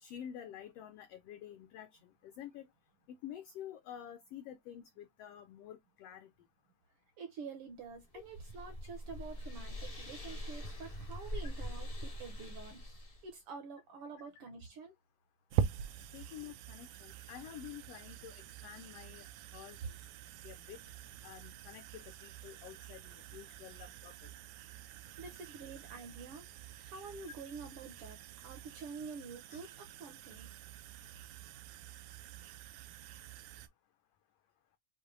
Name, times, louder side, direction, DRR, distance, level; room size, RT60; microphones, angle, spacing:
voice 1, 0.0-2.7 3.1-6.3 8.1-8.2 11.4-11.5 16.1-19.3 19.5-20.0 20.4-20.8 21.2-24.3 29.5-29.6, left 10 dB, 80° left, 1.4 m, -49 dB
voice 2, 7.2-14.9 25.2-26.4 26.8-30.5, right 5 dB, 70° right, 1.4 m, -48 dB
sound 1, 7.9-13.3, left 1 dB, 45° left, 0.4 m, -43 dB
sound 2, 15.5-33.7, right 9 dB, 90° right, 2.1 m, -44 dB
6.6 x 2.6 x 2.6 m
omnidirectional pair, 3.4 m